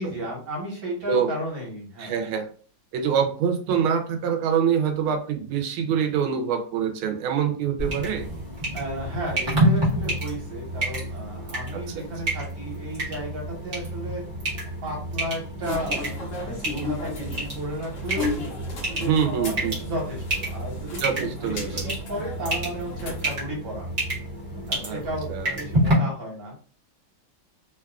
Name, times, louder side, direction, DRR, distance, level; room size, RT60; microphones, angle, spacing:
voice 1, 0.0-2.2 8.7-14.3 14.8-18.4 18.8-23.9 24.7-26.5, equal, 70° right, -2 dB, 1.7 m, -34 dB
voice 2, 2.0-2.5 2.9-8.3 11.7-12.1 19.0-19.7 21.0-21.9 24.8-25.0 25.3-25.6, right 7 dB, 90° right, 5 dB, 1.4 m, -25 dB
sound 1, 7.8-25.9, right 1 dB, 35° right, 1.0 m, -29 dB
sound 2, 15.6-23.4, left 2 dB, 60° left, 0.8 m, -35 dB
3.5 x 2.3 x 2.3 m, 0.41 s
omnidirectional pair, 2.2 m